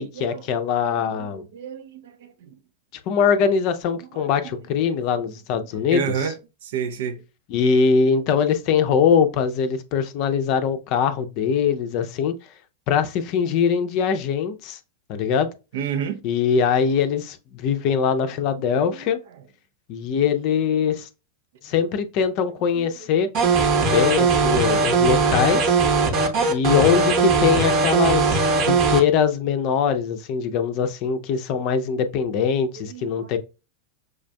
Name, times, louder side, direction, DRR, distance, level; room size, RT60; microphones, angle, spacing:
voice 1, 0.0-1.4 3.1-6.3 7.5-12.3 12.9-14.8 15.1-15.5 16.2-19.2 19.9-21.1 21.6-23.3 23.8-25.8 26.5-33.4, left 6 dB, 40° left, 0.5 m, -22 dB
voice 2, 0.9-2.6 4.1-4.4 4.8-5.1 5.9-7.2 15.7-16.2 18.7-19.1 22.7-22.9 32.8-33.4, right 7 dB, 55° right, 0.5 m, -31 dB
sound 1, 23.3-29.0, right 4 dB, 40° right, 0.9 m, -19 dB
6.2 x 2.4 x 2.2 m
figure-of-eight pair, 90°, 0 cm